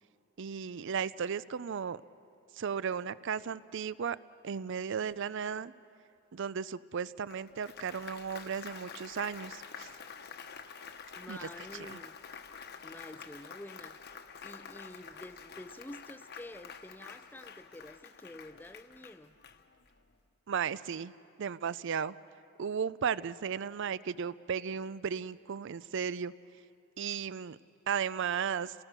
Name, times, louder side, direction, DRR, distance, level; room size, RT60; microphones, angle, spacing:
voice 1, 0.4-2.0 2.6-4.2 4.4-5.7 6.3-9.9 11.3-11.5 11.8-12.0 20.5-21.1 21.4-22.1 22.6-26.3 27.0-27.6 27.9-28.7, right 7 dB, 60° right, 18 dB, 0.5 m, -35 dB
Applause, 7.3-20.0, left 6 dB, 50° left, 1.1 m, -48 dB
voice 2, 11.1-12.2 12.8-14.0 14.4-19.3, left 1 dB, 10° left, 13 dB, 0.5 m, -49 dB
30.0 x 18.5 x 6.7 m, 2.7 s
head